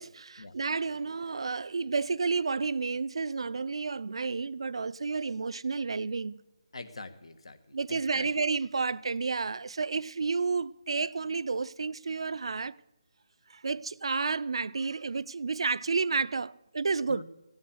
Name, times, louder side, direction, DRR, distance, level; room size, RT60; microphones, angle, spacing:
voice 1, 0.0-6.4 7.7-12.7 13.5-17.2, right 4 dB, 70° right, 0.5 m, -31 dB
voice 2, 6.7-8.3 17.1-17.2, left 3 dB, 75° left, 1.5 m, -44 dB
16.5 x 9.6 x 8.0 m
figure-of-eight pair, 160°, 3 cm